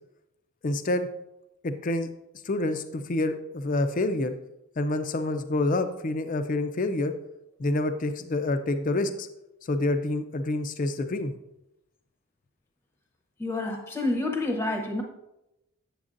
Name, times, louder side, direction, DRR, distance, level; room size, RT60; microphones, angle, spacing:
voice 1, 0.6-1.1 1.6-2.1 2.4-4.3 4.8-7.1 7.6-9.3 9.7-11.3, left 2 dB, 35° left, 0.4 m, -27 dB
voice 2, 13.4-15.0, left 2 dB, 10° left, 0.7 m, -28 dB
8.5 x 7.2 x 2.5 m
head